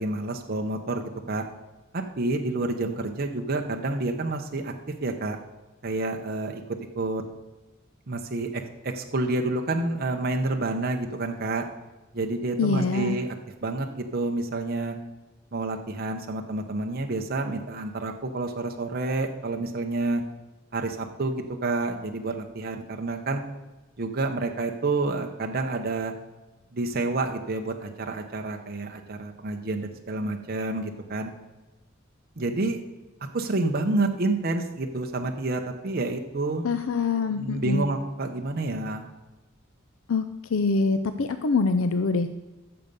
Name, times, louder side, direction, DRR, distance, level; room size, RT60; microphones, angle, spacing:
voice 1, 0.0-1.4 2.2-4.7 5.0-5.4 5.8-6.6 7.0-7.2 8.1-11.6 12.1-13.3 13.6-15.0 15.5-20.2 20.7-23.4 24.0-26.1 26.7-31.3 32.4-32.8 33.3-36.7 37.4-39.1, right 2 dB, 50° right, 3 dB, 0.8 m, -29 dB
voice 2, 12.6-13.2 36.6-37.8 40.1-40.2 40.5-42.3, left 4 dB, 80° left, 10 dB, 0.5 m, -24 dB
14.5 x 6.8 x 5.3 m, 1.1 s
head